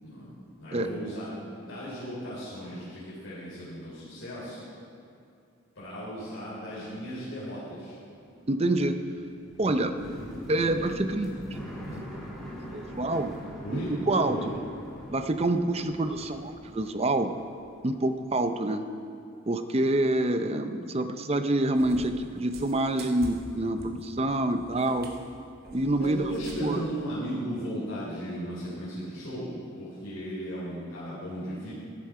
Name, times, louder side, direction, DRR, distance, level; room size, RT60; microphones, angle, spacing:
voice 1, 0.0-4.7 5.8-8.0 13.6-14.5 26.0-29.5 29.8-31.7, equal, 70° left, -10 dB, 3.9 m, -36 dB
sound 1, 8.2-18.3 18.5-19.4, equal, ahead, 2.4 m, -43 dB
voice 2, 8.5-9.0 9.6-10.0 10.5-11.5 12.7-13.3 13.7-13.8 14.1-14.5 15.1-17.3 17.8-18.8 19.5-25.1 25.7-26.3 26.6-26.8, right 1 dB, 30° right, 8 dB, 0.6 m, -27 dB
Cat, 21.8-26.9, right 1 dB, 45° right, 1.2 m, -45 dB
14.5 x 11.0 x 4.8 m, 2.4 s
head